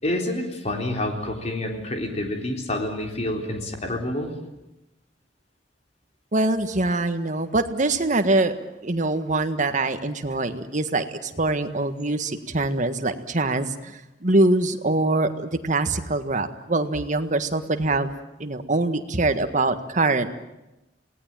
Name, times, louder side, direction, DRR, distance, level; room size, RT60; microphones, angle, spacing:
voice 1, 0.0-4.4, left 1 dB, 40° left, 3 dB, 3.9 m, -28 dB
voice 2, 6.3-8.6 8.8-18.1 18.4-20.3, right 2 dB, 45° right, 8 dB, 1.6 m, -24 dB
27.5 x 18.5 x 9.0 m, 0.94 s
head